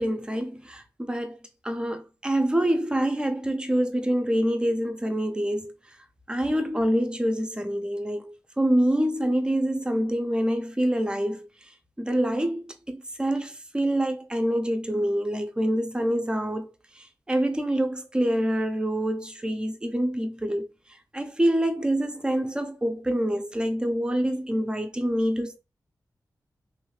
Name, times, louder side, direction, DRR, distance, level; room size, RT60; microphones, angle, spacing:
voice 1, 0.0-1.4 1.6-5.7 6.3-11.7 12.0-20.7 21.1-25.6, right 1 dB, 15° right, 0.5 m, -26 dB
3.0 x 2.3 x 3.1 m
wide cardioid pair, 90°, 7 cm